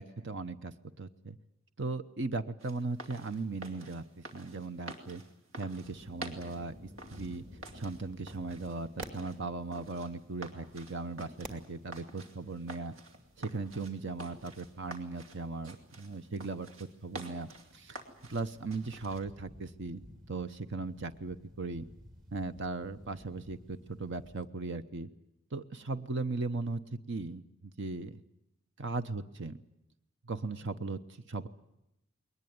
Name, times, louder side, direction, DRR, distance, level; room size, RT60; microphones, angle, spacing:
voice 1, 0.0-1.4 1.8-5.2 5.5-6.7 7.1-7.4 7.7-12.9 13.4-16.7 17.0-18.0 18.3-20.0 20.3-21.8 22.3-25.1 25.5-26.8 27.1-27.4 27.8-28.2 28.8-29.5 30.2-31.0 31.3-31.5, right 3 dB, 60° right, 10 dB, 0.9 m, -38 dB
sound 1, 2.6-19.2, right 2 dB, 80° right, 3.0 m, -49 dB
sound 2, 5.8-24.5, equal, 40° right, 2.3 m, -55 dB
21.5 x 19.5 x 9.4 m, 0.86 s
head